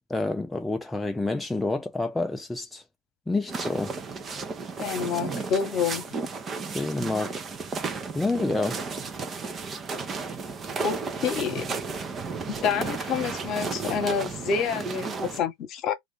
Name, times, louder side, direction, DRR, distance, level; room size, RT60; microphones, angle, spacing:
voice 1, 0.1-2.8 3.3-4.0 6.7-7.4 7.7-7.8 8.1-8.8, left 2 dB, 10° left, 0.3 m, -28 dB
sound 1, 3.5-15.4, right 4 dB, 25° right, 0.6 m, -33 dB
voice 2, 4.8-6.0 10.8-11.0 11.2-11.6 12.6-15.9, left 7 dB, 45° left, 1.1 m, -28 dB
2.5 x 2.5 x 3.3 m
hypercardioid pair, 100°, 0 cm